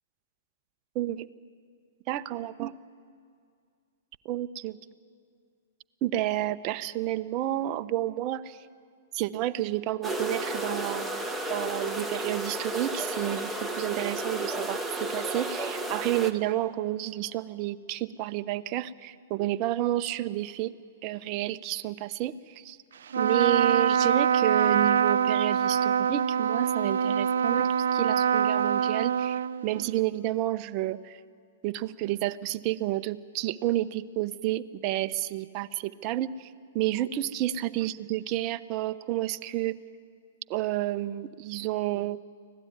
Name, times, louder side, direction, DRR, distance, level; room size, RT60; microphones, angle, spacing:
voice 1, 0.9-1.3 2.1-2.7 4.2-4.8 6.0-8.6 9.1-20.7 21.0-22.8 23.2-31.2 31.6-36.5 36.7-39.8 40.5-42.2, right 14 dB, 40° right, 11 dB, 0.8 m, -30 dB
sound 1, 10.0-16.3, right 1 dB, ahead, 1.5 m, -33 dB
Trumpet, 23.1-29.9, right 8 dB, 70° right, 0.8 m, -24 dB
25.0 x 17.0 x 9.5 m, 2.3 s
hypercardioid pair, 115°, 0 cm